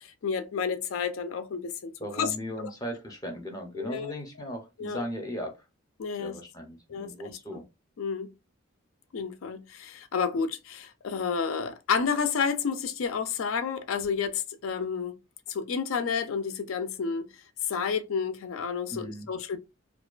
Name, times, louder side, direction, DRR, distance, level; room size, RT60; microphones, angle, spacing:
voice 1, 0.0-2.3 3.8-4.1 4.8-5.0 6.0-6.4 6.9-7.4 8.0-8.3 9.1-15.2 15.5-17.3 17.7-19.6, left 6 dB, 70° left, 0.4 m, -30 dB
voice 2, 2.0-5.6 6.2-7.6 18.9-19.3, equal, 15° left, 0.5 m, -37 dB
2.4 x 2.2 x 2.3 m
head